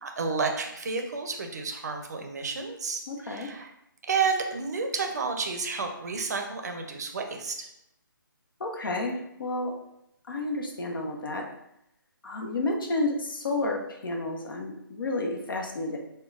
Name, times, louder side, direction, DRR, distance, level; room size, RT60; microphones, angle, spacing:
voice 1, 0.0-3.7 4.1-7.7, right 4 dB, 50° right, 4 dB, 0.5 m, -31 dB
voice 2, 3.1-3.5 8.6-9.7 10.3-11.5 12.2-16.0, left 2 dB, 75° left, 1 dB, 0.8 m, -31 dB
4.9 x 2.2 x 2.4 m, 0.81 s
hypercardioid pair, 170°, 12 cm